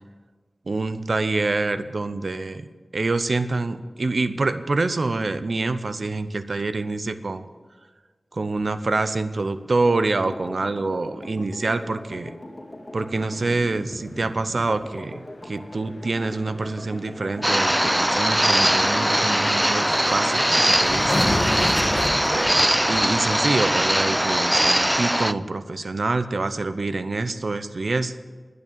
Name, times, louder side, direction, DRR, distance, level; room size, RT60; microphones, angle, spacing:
voice 1, 0.7-2.7 2.9-7.5 8.3-12.3 12.9-21.6 22.3-28.2, right 3 dB, 75° right, 12 dB, 0.7 m, -26 dB
sound 1, 9.9-20.7, left 1 dB, 35° left, 2.2 m, -40 dB
sound 2, 13.4-23.9 24.1-24.2, left 1 dB, 55° left, 1.6 m, -32 dB
sound 3, 17.4-25.3, equal, 10° right, 0.4 m, -21 dB
11.0 x 9.5 x 7.5 m, 1.4 s
cardioid pair, 40°, 0 cm